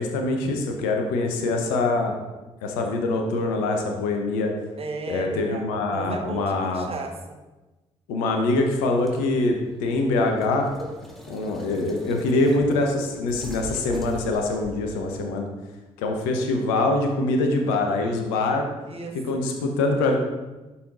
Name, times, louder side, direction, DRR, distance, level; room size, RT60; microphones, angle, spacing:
voice 1, 0.0-2.2 2.6-4.5 5.1-6.9 8.1-10.7 11.3-15.5 16.0-18.6 19.3-20.2, left 2 dB, 75° left, 3 dB, 1.0 m, -24 dB
voice 2, 4.8-7.4 18.9-19.4, right 4 dB, 40° right, 4 dB, 1.3 m, -35 dB
sound 1, 9.0-15.1, left 1 dB, ahead, 1.7 m, -41 dB
11.0 x 5.6 x 2.6 m, 1.1 s
figure-of-eight pair, 40°, 15 cm